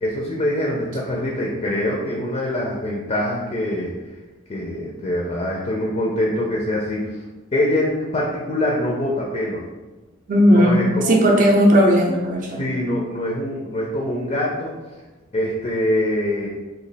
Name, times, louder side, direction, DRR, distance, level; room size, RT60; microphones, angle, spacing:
voice 1, 0.0-3.9 4.5-7.2 7.5-9.6 10.5-11.2 12.6-14.7 15.3-16.5, left 1 dB, 30° left, -2 dB, 0.4 m, -24 dB
voice 2, 10.3-12.6, equal, 35° right, -2 dB, 0.5 m, -16 dB
3.0 x 2.4 x 3.9 m, 1.2 s
head